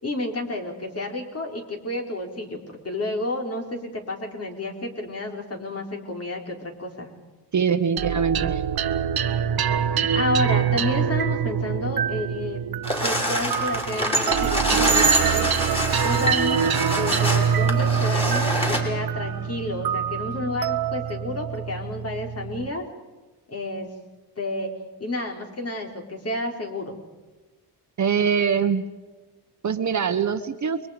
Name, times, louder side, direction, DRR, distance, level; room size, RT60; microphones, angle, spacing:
voice 1, 0.0-7.1 9.7-12.6 13.0-15.5 16.0-22.8 23.5-23.9 24.4-24.7 25.0-27.0, left 2 dB, 35° left, 2 dB, 4.8 m, -30 dB
voice 2, 7.5-8.6 28.0-28.9 29.6-30.8, right 6 dB, 45° right, 8 dB, 1.4 m, -23 dB
sound 1, 8.0-22.7, right 8 dB, 65° right, 1.3 m, -25 dB
sound 2, 12.8-18.8, right 1 dB, 15° left, 5.9 m, -25 dB
30.0 x 23.0 x 5.3 m, 1.2 s
cardioid pair, 110°, 40 cm